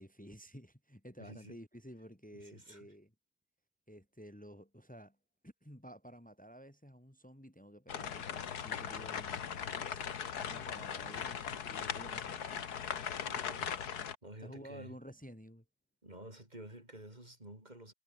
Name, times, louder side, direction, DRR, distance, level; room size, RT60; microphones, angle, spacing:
voice 1, 0.0-3.1 3.9-5.2 5.4-12.7 13.3-13.4 14.4-15.6, equal, 5° left, 3.3 m, -53 dB
voice 2, 1.2-1.6 2.3-2.9 13.2-13.7 14.2-14.9 16.0-17.9, right 1 dB, 25° right, 6.6 m, -51 dB
sound 1, 7.9-14.2, left 8 dB, 80° left, 1.9 m, -39 dB
omnidirectional pair, 1.6 m